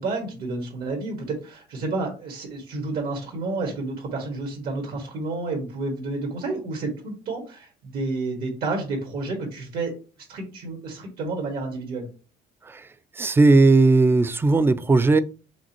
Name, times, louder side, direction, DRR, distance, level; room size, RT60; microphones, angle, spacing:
voice 1, 0.0-10.0 10.3-12.1, right 3 dB, 70° right, 1.7 m, -30 dB
voice 2, 13.2-15.2, right 3 dB, 15° right, 0.3 m, -17 dB
5.2 x 3.3 x 2.8 m
cardioid pair, 110°, 17 cm